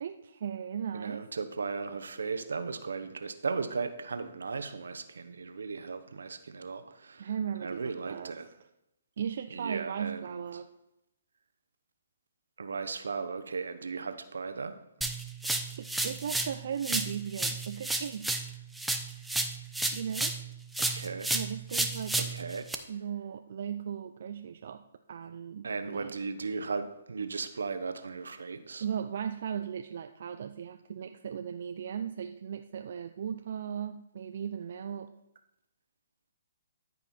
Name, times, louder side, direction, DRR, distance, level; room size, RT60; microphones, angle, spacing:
voice 1, 0.0-1.2 7.2-8.3 9.2-10.7 15.8-18.3 19.9-20.3 21.3-22.2 22.9-24.8 25.1-26.1 28.8-35.1, right 8 dB, 60° right, 7 dB, 0.5 m, -37 dB
voice 2, 0.9-7.3 7.6-8.5 9.5-10.4 12.6-14.7 20.8-21.3 22.1-22.7 25.6-28.8, right 4 dB, 80° right, 9 dB, 1.0 m, -36 dB
sound 1, 15.0-16.6 16.8-20.5 20.7-22.7, right 2 dB, 5° right, 0.6 m, -32 dB
13.5 x 5.4 x 4.4 m, 0.86 s
hypercardioid pair, 140°, 0 cm